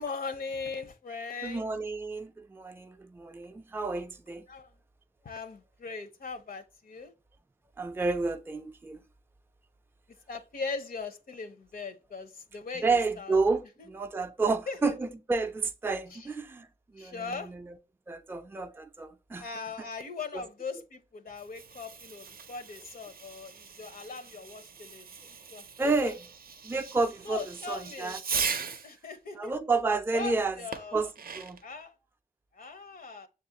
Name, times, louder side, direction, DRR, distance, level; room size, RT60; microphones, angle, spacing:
voice 1, 0.0-1.7 4.5-4.7 5.2-7.1 10.3-13.4 14.7-14.9 16.1-16.3 17.0-17.5 19.4-25.1 25.5-26.2 27.2-28.2 28.8-29.5 30.1-31.1 31.6-31.9 32.5-33.3, left 4 dB, 70° left, 0.6 m, -39 dB
voice 2, 1.4-4.4 7.8-9.1 12.7-16.7 16.9-17.8 18.1-19.5 20.3-20.4 25.8-26.2 26.6-28.2 29.4-30.6 30.9-31.6, right 3 dB, 15° right, 0.3 m, -30 dB
Fireworks, 21.3-28.9 30.7-31.7, right 5 dB, 75° right, 0.5 m, -39 dB
6.6 x 2.4 x 2.7 m
wide cardioid pair, 120°, 16 cm